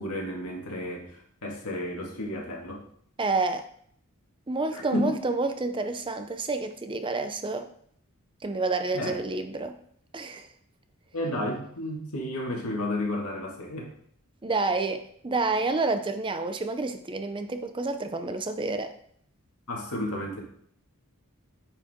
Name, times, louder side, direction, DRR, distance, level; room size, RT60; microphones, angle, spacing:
voice 1, 0.0-2.9 4.7-5.3 8.9-9.2 11.1-13.9 19.7-20.4, left 1 dB, 80° left, -1 dB, 2.1 m, -32 dB
voice 2, 3.2-3.7 4.5-7.7 8.4-9.8 10.1-10.5 14.4-18.9, right 3 dB, 20° right, 8 dB, 0.6 m, -29 dB
9.9 x 4.9 x 3.7 m, 0.62 s
head